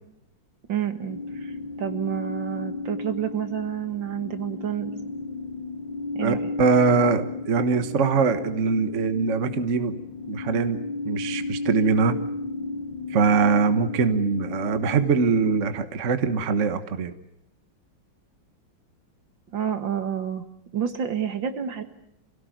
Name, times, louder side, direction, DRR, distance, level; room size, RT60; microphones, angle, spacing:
voice 1, 0.7-4.9 6.1-6.5 19.5-20.4 20.7-21.8, right 9 dB, 65° right, 8 dB, 2.4 m, -29 dB
sound 1, 1.1-15.7, left 3 dB, 65° left, 3.0 m, -34 dB
voice 2, 6.2-10.0 10.3-12.2 13.1-17.1, right 5 dB, 40° right, 9 dB, 1.4 m, -22 dB
28.0 x 17.5 x 9.3 m, 0.83 s
omnidirectional pair, 2.2 m